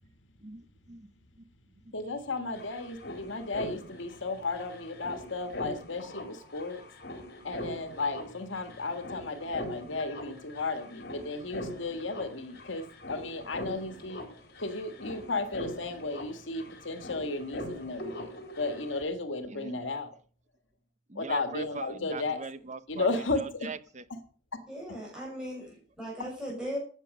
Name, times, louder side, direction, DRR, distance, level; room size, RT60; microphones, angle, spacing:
voice 1, 0.4-1.1 1.8-1.9 19.5-19.7 21.1-23.1 23.4-24.0, right 3 dB, 35° right, 0.9 m, -41 dB
voice 2, 1.9-6.8 7.4-14.2 14.6-20.1 21.2-22.4 22.9-23.7 24.1-24.2, left 3 dB, 80° left, 1.7 m, -34 dB
sound 1, 2.0-2.1 2.3-19.0, left 1 dB, 55° left, 4.0 m, -43 dB
voice 3, 24.7-26.8, equal, 5° right, 6.2 m, -38 dB
14.5 x 8.8 x 6.4 m
head